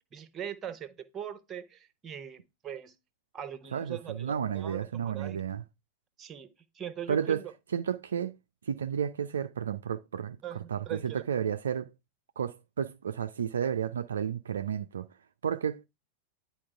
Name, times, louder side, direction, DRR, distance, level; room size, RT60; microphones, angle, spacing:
voice 1, 0.1-2.9 3.3-5.4 6.2-7.5 10.4-11.2, right 9 dB, 25° right, 0.8 m, -41 dB
voice 2, 3.7-5.6 7.1-7.4 7.7-8.4 8.7-10.4 10.7-11.9 12.4-15.1 15.4-15.9, right 8 dB, 65° right, 0.3 m, -32 dB
10.0 x 4.2 x 3.4 m
figure-of-eight pair, 90°, 0 cm